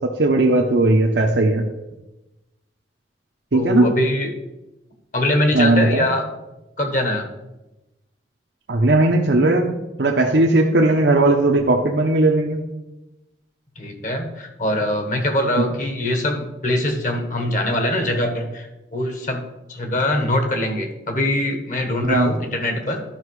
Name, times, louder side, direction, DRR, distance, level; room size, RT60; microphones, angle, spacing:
voice 1, 0.2-1.6 3.5-3.9 5.5-6.1 8.7-12.6 22.1-22.3, right 2 dB, 80° right, 1 dB, 0.8 m, -17 dB
voice 2, 3.5-4.4 5.1-6.3 6.8-7.3 13.8-23.0, left 1 dB, 45° left, 5 dB, 1.3 m, -23 dB
11.5 x 5.8 x 4.7 m, 0.98 s
head